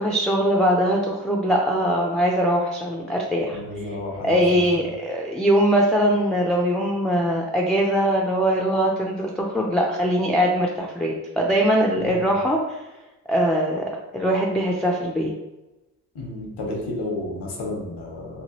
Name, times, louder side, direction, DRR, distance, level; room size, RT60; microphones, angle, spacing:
voice 1, 0.0-3.6 4.2-12.8 13.3-13.8 14.1-15.3, equal, ahead, -1 dB, 0.4 m, -21 dB
voice 2, 3.5-4.4 12.0-12.2 16.1-18.3, left 2 dB, 75° left, -1 dB, 0.9 m, -31 dB
2.9 x 2.2 x 3.0 m, 1.0 s
supercardioid pair, 45°, 41 cm